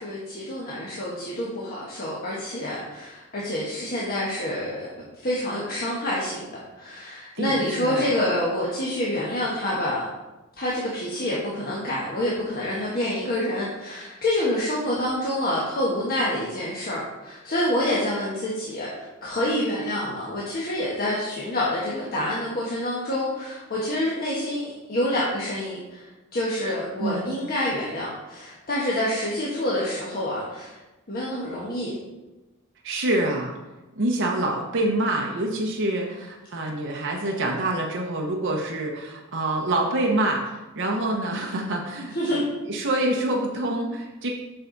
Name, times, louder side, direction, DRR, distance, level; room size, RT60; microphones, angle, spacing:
voice 1, 0.0-4.9 5.2-10.0 10.6-30.8 31.1-31.9 42.1-42.4, left 1 dB, 45° left, -6 dB, 1.4 m, -27 dB
voice 2, 7.4-8.1 27.0-27.2 32.8-33.6 34.0-42.4 42.7-44.3, right 1 dB, 60° right, 0 dB, 0.9 m, -26 dB
7.8 x 5.8 x 4.0 m, 1.1 s
head